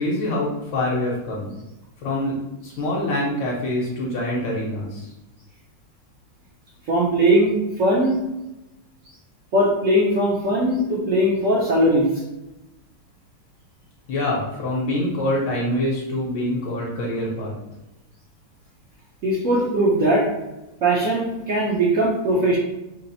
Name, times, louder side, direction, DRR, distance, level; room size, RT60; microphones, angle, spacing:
voice 1, 0.0-1.5 2.0-2.4 2.6-5.1 14.1-17.5, left 1 dB, 70° left, -5 dB, 1.4 m, -25 dB
voice 2, 6.9-8.2 9.5-12.1 19.2-20.3 20.8-22.6, right 1 dB, 65° right, -5 dB, 0.8 m, -19 dB
4.2 x 2.0 x 4.0 m, 0.98 s
omnidirectional pair, 2.2 m